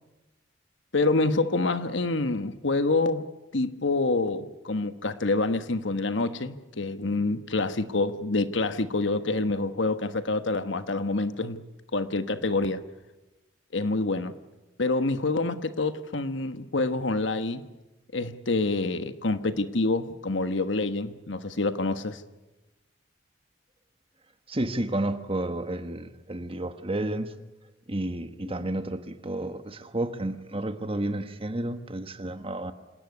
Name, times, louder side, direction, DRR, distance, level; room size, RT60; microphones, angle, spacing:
voice 1, 0.9-3.3 3.5-11.6 11.9-12.8 13.7-14.3 14.8-17.7 18.1-22.2, left 2 dB, 75° left, 1.3 m, -27 dB
voice 2, 24.5-27.3 27.9-32.7, right 1 dB, 30° right, 1.4 m, -31 dB
27.0 x 18.0 x 9.6 m
head